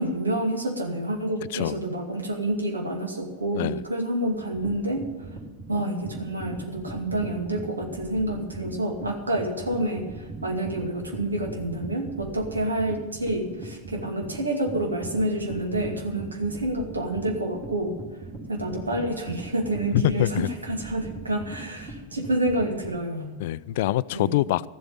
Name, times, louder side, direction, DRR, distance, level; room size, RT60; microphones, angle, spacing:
voice 1, 0.0-5.1 5.7-18.0 18.5-23.4 24.1-24.3, right 1 dB, 75° right, 3 dB, 2.3 m, -28 dB
sound 1, 4.4-23.0, right 2 dB, 15° right, 3.7 m, -39 dB
voice 2, 19.9-20.5 23.4-24.7, left 14 dB, 50° left, 19 dB, 0.3 m, -24 dB
13.5 x 8.0 x 9.1 m, 1.3 s
figure-of-eight pair, 90°, 0 cm